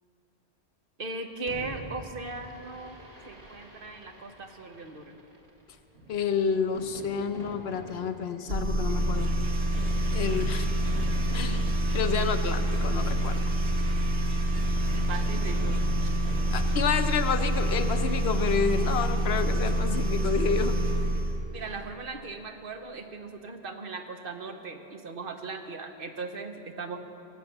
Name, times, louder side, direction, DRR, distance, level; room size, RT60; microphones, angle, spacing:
voice 1, 1.0-3.0 3.3-5.2 14.9-15.8 21.5-27.0, right 3 dB, 55° right, 6 dB, 1.0 m, -38 dB
Fireworks, 1.5-17.6, equal, 35° right, 1.6 m, -45 dB
voice 2, 6.1-9.3 10.0-10.7 11.3-11.6 11.9-13.6 16.5-20.8, left 6 dB, 70° left, 9 dB, 0.9 m, -29 dB
sound 1, 8.5-21.4, right 1 dB, 75° right, 1.5 m, -27 dB
18.0 x 7.8 x 7.0 m, 2.7 s
omnidirectional pair, 1.1 m